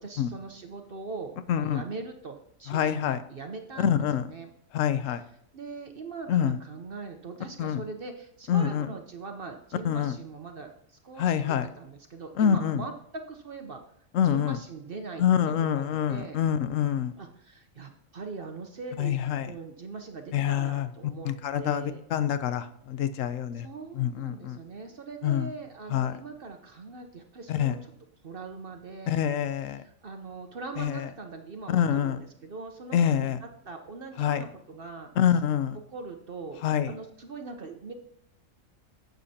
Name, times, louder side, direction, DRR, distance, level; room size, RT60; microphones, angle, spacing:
voice 1, 0.0-4.5 5.5-13.8 14.2-16.4 17.2-19.2 19.4-21.3 21.6-22.0 23.5-27.9 28.2-29.3 29.7-35.1 35.9-36.6 36.9-37.9, right 4 dB, 50° right, 4 dB, 0.9 m, -41 dB
voice 2, 1.5-1.8 2.7-3.2 3.8-4.3 4.7-5.2 6.3-6.6 7.6-7.8 8.5-8.9 9.8-10.1 11.2-11.7 12.4-12.8 14.1-14.6 15.2-17.1 19.0-19.5 20.3-20.9 21.2-23.7 23.9-24.6 25.2-25.5 25.9-26.1 27.5-27.8 29.1-29.8 30.8-31.1 31.7-32.2 32.9-33.4 34.2-34.4 35.2-35.8 36.6-36.9, left 9 dB, 75° left, 12 dB, 1.0 m, -26 dB
11.5 x 7.9 x 2.8 m, 0.70 s
omnidirectional pair, 1.4 m